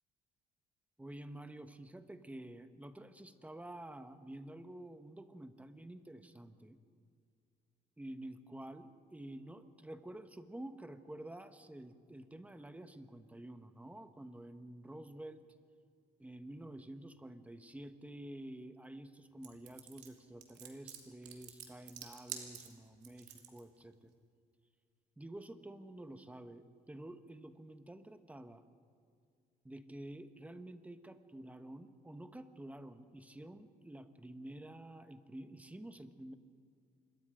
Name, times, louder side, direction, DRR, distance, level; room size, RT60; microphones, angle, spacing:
voice 1, 1.0-6.8 8.0-15.5 16.2-24.1 25.2-28.6 29.6-36.4, right 1 dB, 10° right, 9 dB, 1.2 m, -50 dB
sound 1, 19.4-23.6, right 10 dB, 85° right, 2.9 m, -48 dB
27.0 x 22.0 x 5.1 m, 2.2 s
cardioid pair, 110°, 17 cm